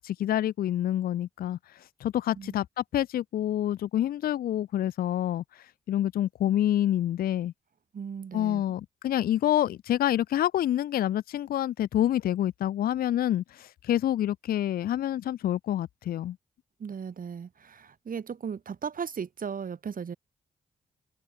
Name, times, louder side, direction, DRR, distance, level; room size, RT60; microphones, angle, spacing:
voice 1, 0.0-7.5 8.3-16.4, left 12 dB, 70° left, 0.4 m, -27 dB
voice 2, 7.9-8.6 16.8-20.2, right 6 dB, 60° right, 2.9 m, -36 dB
open air
supercardioid pair, 45°, 16 cm